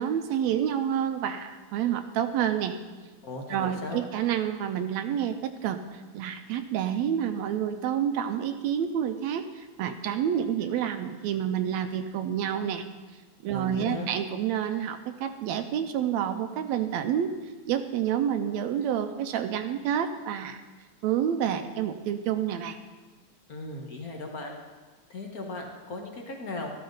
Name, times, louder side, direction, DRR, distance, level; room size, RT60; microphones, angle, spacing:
voice 1, 0.0-2.8 3.5-12.9 13.4-17.3 17.7-20.6 21.0-22.8, right 9 dB, 75° right, 8 dB, 1.8 m, -28 dB
voice 2, 3.2-4.0 13.5-14.1 23.5-24.6 25.1-26.7, left 2 dB, 40° left, 1 dB, 1.4 m, -37 dB
13.5 x 13.0 x 4.0 m, 1.3 s
omnidirectional pair, 3.3 m